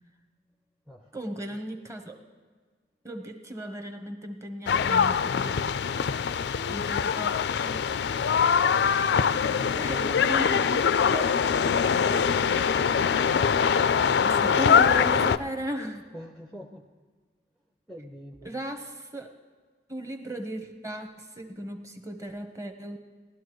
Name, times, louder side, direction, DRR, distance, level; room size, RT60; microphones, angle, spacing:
voice 1, 1.1-2.2 3.0-5.7 6.7-7.4 7.6-7.8 9.8-11.4 14.2-16.0 18.4-19.4 19.9-23.0, right 1 dB, 15° right, 6 dB, 1.0 m, -36 dB
sound 1, 4.7-15.4, left 6 dB, 70° left, 0.4 m, -23 dB
voice 2, 9.3-10.2 16.1-16.9 17.9-18.6, equal, ahead, 2 dB, 0.6 m, -43 dB
17.5 x 12.0 x 3.1 m, 1.5 s
head